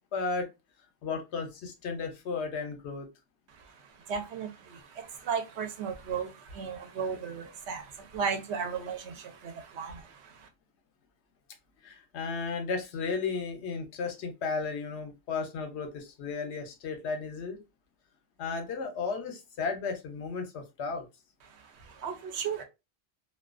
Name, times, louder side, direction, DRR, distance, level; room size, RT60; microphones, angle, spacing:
voice 1, 0.1-0.5 1.0-3.1 11.8-17.6 18.4-21.1, left 4 dB, 75° left, 0.9 m, -34 dB
voice 2, 3.5-10.5 21.4-22.6, right 6 dB, 75° right, 0.8 m, -36 dB
2.3 x 2.2 x 2.4 m
omnidirectional pair, 1.1 m